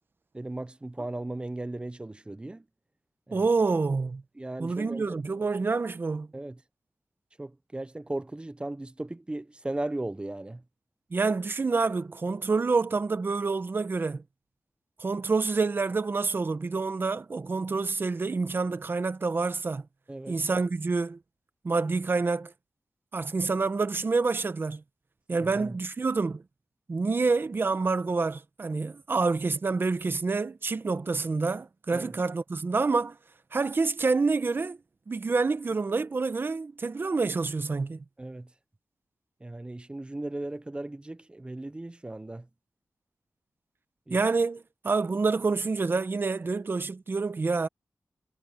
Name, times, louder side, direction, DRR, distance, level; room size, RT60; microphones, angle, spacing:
voice 1, 0.3-2.6 3.3-3.5 4.4-5.2 6.3-6.6 7.4-10.6 20.1-20.4 25.4-25.7 31.9-32.1 38.2-38.5 39.4-42.5 44.1-44.2, right 2 dB, 20° right, 0.7 m, -37 dB
voice 2, 3.3-4.2 4.6-6.3 11.1-14.2 15.0-19.8 20.3-21.2 21.6-22.5 23.1-24.8 25.3-26.4 26.9-33.2 33.5-34.8 35.1-38.0 44.1-47.7, right 4 dB, 40° right, 1.0 m, -27 dB
wide cardioid pair, 100°, 5 cm